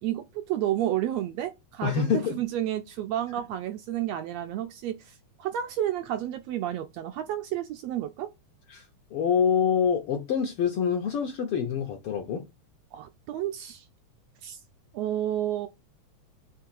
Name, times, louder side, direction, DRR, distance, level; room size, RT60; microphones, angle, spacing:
voice 1, 0.0-8.3 12.9-13.8 14.4-14.6 14.9-15.7, right 12 dB, 75° right, 1.6 m, -31 dB
voice 2, 1.8-2.4 8.7-8.8 9.1-12.4, left 7 dB, 70° left, 1.4 m, -26 dB
7.4 x 3.1 x 4.6 m
omnidirectional pair, 3.4 m